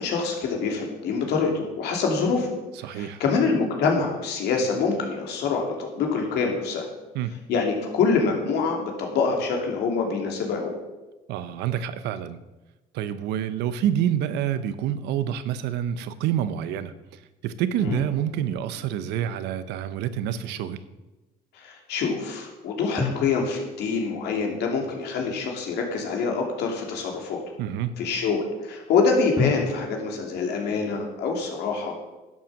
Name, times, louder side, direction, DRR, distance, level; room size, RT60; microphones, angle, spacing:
voice 1, 0.0-2.5 2.9-6.9 7.5-10.8 17.8-18.0 21.6-27.4 28.0-31.9, left 4 dB, 80° left, 1 dB, 2.7 m, -25 dB
voice 2, 2.8-3.2 7.1-7.4 11.3-12.4 12.9-16.9 17.4-20.8 27.6-28.0, right 10 dB, 85° right, 13 dB, 0.8 m, -27 dB
sound 1, 17.9-20.1 23.0-25.9 29.4-31.3, left 3 dB, 15° right, 2.5 m, -35 dB
11.0 x 7.6 x 6.2 m, 1.1 s
cardioid pair, 110°, 17 cm